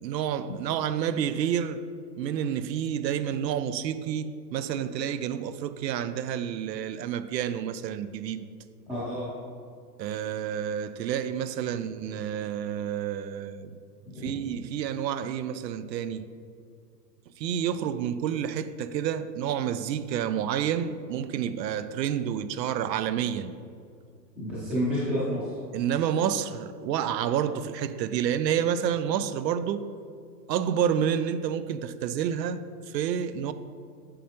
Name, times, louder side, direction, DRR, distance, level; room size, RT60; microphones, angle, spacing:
voice 1, 0.0-1.8 2.2-8.5 10.0-13.8 14.2-16.3 17.4-23.5 25.7-29.8 30.5-33.5, right 9 dB, 80° right, 0.6 m, -29 dB
voice 2, 8.9-9.3 11.7-11.8 14.1-14.3 24.4-25.6, equal, 5° right, 0.6 m, -29 dB
9.0 x 6.5 x 2.9 m
supercardioid pair, 175°, 50 cm